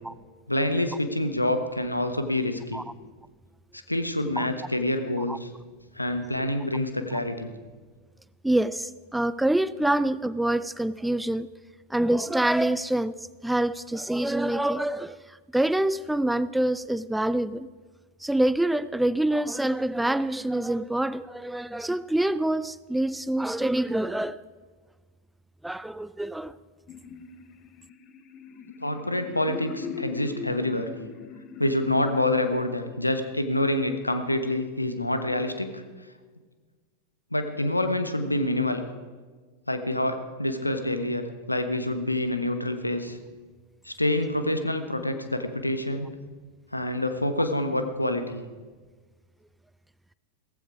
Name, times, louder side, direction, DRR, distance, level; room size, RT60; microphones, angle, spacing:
voice 1, 0.5-2.8 3.9-5.5 5.9-7.5 28.8-30.9 31.6-35.8 37.3-38.8 39.7-43.2 43.8-46.1 46.7-48.4, left 1 dB, 85° left, 1.3 m, -27 dB
voice 2, 8.4-11.5 11.9-13.1 13.4-17.7 18.2-24.4 25.6-26.6, right 1 dB, 5° right, 0.4 m, -26 dB
sound 1, 26.9-32.2, left 7 dB, 30° left, 1.1 m, -39 dB
16.5 x 15.5 x 4.9 m
figure-of-eight pair, 90°, 0 cm